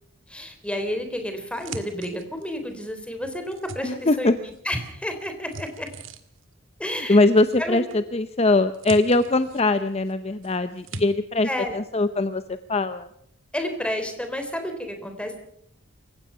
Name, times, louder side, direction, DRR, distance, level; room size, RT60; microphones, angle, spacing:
voice 1, 0.3-5.9 6.8-7.2 7.6-7.8 11.4-11.8 13.5-15.4, left 1 dB, 5° left, 6 dB, 3.6 m, -31 dB
sound 1, 0.9-2.7 3.2-4.6 4.8-6.5 7.5-8.1 8.4-10.1 10.4-11.0, right 3 dB, 70° right, 2.0 m, -41 dB
voice 2, 3.8-4.4 7.1-13.1, left 2 dB, 30° left, 11 dB, 0.8 m, -22 dB
28.0 x 16.0 x 5.7 m, 0.69 s
head